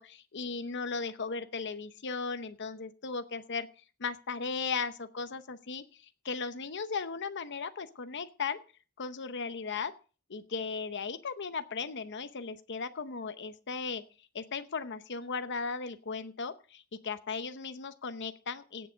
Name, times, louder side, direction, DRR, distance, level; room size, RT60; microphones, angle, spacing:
voice 1, 0.0-3.7 4.0-8.6 9.0-9.9 10.3-14.0 14.3-18.9, left 5 dB, 55° left, 10 dB, 0.8 m, -37 dB
17.0 x 7.0 x 5.1 m, 0.37 s
head